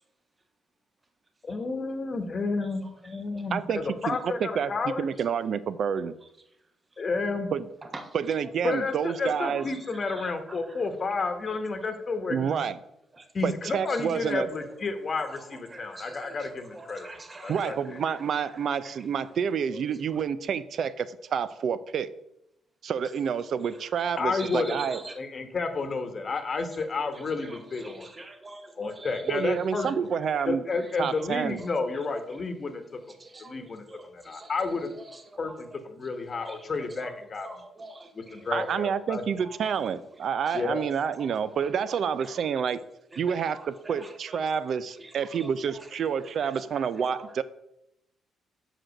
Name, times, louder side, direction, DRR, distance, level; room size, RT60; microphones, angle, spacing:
voice 1, 1.5-5.1 7.0-7.5 8.6-12.6 13.3-18.0 24.2-24.8 25.2-28.1 28.8-30.1 30.4-32.8 33.4-33.8 34.1-34.9 35.4-37.5 38.1-39.2 40.5-40.8, left 3 dB, 40° left, 7 dB, 1.1 m, -31 dB
voice 2, 4.1-6.1 7.5-7.7 8.1-9.6 12.3-12.8 13.4-14.5 17.5-22.1 22.8-25.0 29.3-30.6 31.0-31.6 38.5-42.8 43.2-47.4, right 7 dB, 60° right, 15 dB, 0.5 m, -28 dB
voice 3, 9.9-10.3 13.2-13.3 15.7-16.3 16.7-17.7 24.4-25.1 27.8-29.1 33.2-34.5 35.3-35.5 36.5-36.6 37.0-38.4 42.2-42.3 43.1-43.4 43.9-44.4 45.4-45.5 46.4-46.5, right 2 dB, 25° right, 7 dB, 1.0 m, -45 dB
5.9 x 4.9 x 6.5 m, 0.82 s
cardioid pair, 90°, 0 cm